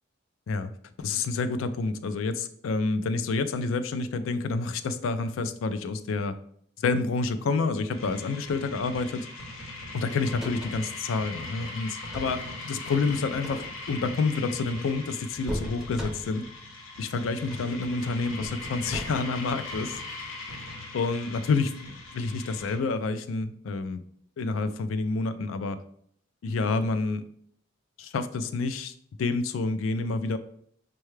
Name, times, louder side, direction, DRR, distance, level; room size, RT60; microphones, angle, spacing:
voice 1, 1.0-6.4 6.8-9.3 9.9-16.4 17.0-20.0 20.9-24.0 24.4-25.8 26.4-27.2 28.0-28.9 29.2-30.4, left 3 dB, 75° left, 11 dB, 0.3 m, -28 dB
sound 1, 7.9-22.8, left 2 dB, 90° left, 0.9 m, -40 dB
sound 2, 10.1-11.0 11.9-12.5 13.3-14.0 15.5-16.5 17.4-17.8 18.4-19.4 21.1-21.2, equal, ahead, 0.5 m, -38 dB
5.4 x 2.3 x 3.1 m, 0.65 s
head